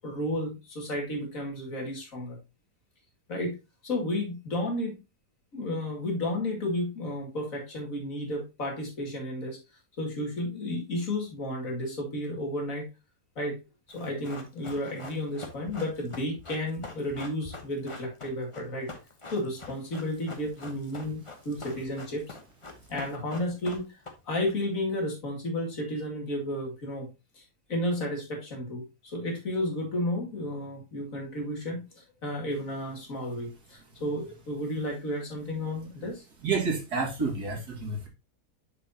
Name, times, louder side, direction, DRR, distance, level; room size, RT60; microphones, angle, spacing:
voice 1, 0.0-2.4 3.3-3.6 3.8-5.0 5.5-9.6 10.0-12.9 13.4-13.6 13.9-18.9 19.3-22.3 22.9-24.0 24.3-27.4 27.7-36.2, left 1 dB, 60° left, 1 dB, 2.6 m, -32 dB
Run, 13.9-24.5 24.8-24.9, left 3 dB, 25° left, 1.0 m, -44 dB
voice 2, 36.4-38.1, right 4 dB, 80° right, 1 dB, 2.5 m, -29 dB
6.8 x 6.8 x 2.8 m, 0.25 s
omnidirectional pair, 1.7 m